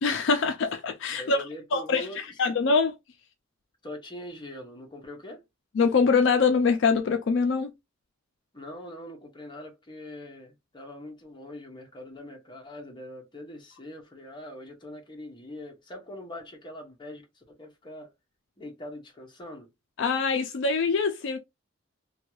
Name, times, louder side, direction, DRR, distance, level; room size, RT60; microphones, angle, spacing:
voice 1, 0.0-1.4 1.7-3.0 5.8-7.7 20.0-21.4, left 4 dB, 65° left, 0.4 m, -24 dB
voice 2, 1.1-2.4 3.8-5.4 8.5-18.1 18.6-19.7, left 1 dB, 25° left, 0.8 m, -42 dB
2.7 x 2.3 x 2.9 m
head